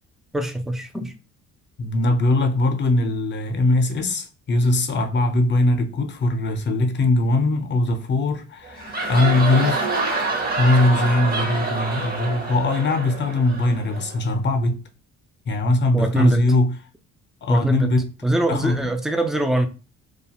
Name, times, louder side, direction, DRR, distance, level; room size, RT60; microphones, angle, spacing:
voice 1, 0.3-1.1 15.9-16.4 17.5-17.9 18.2-19.7, right 1 dB, ahead, 0.4 m, -22 dB
voice 2, 1.8-9.9 10.6-14.8 15.5-16.7 17.4-18.0 18.5-18.8, left 2 dB, 40° left, 0.6 m, -21 dB
sound 1, 8.6-14.2, right 2 dB, 30° right, 0.7 m, -27 dB
2.4 x 2.3 x 2.8 m
cardioid pair, 90°, 30 cm